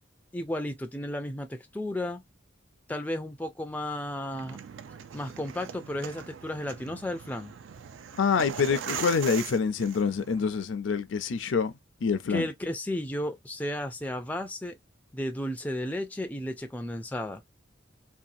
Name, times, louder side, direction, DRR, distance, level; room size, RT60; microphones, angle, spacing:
voice 1, 0.3-2.2 2.9-4.6 5.1-7.5 12.3-14.8 15.1-17.4, left 1 dB, 10° left, 0.3 m, -33 dB
sound 1, 4.3-10.5, right 8 dB, 80° right, 0.4 m, -41 dB
voice 2, 8.2-11.7 12.0-12.5, left 5 dB, 75° left, 0.5 m, -26 dB
2.7 x 2.3 x 2.5 m
head